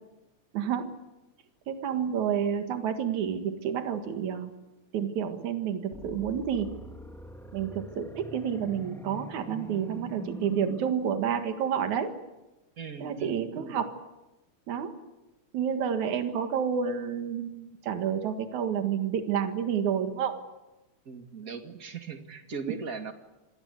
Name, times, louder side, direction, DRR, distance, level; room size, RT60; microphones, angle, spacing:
voice 1, 0.5-0.9 1.7-4.5 4.9-6.8 7.5-12.1 13.0-13.9 14.7-14.9 15.5-20.4 22.7-22.8, right 8 dB, 75° right, 7 dB, 3.1 m, -29 dB
sound 1, 5.9-10.9, equal, ahead, 1.0 m, -43 dB
voice 2, 12.8-13.8 21.1-23.1, right 5 dB, 30° right, 6 dB, 2.1 m, -39 dB
26.5 x 19.5 x 8.2 m, 1.0 s
omnidirectional pair, 3.4 m